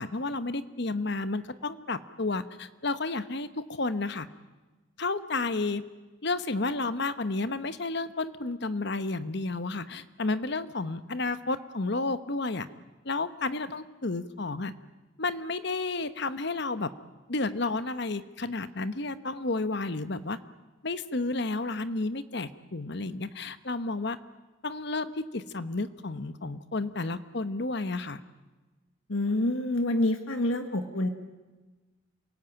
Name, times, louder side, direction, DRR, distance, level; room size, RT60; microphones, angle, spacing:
voice 1, 0.0-4.3 5.0-5.8 6.2-12.7 13.0-14.7 15.2-16.9 17.3-20.4 20.8-24.2 24.6-28.2, left 3 dB, 55° left, 13 dB, 1.0 m, -31 dB
voice 2, 29.1-31.1, left 1 dB, 75° left, 7 dB, 1.7 m, -27 dB
27.5 x 18.0 x 8.9 m, 1.2 s
head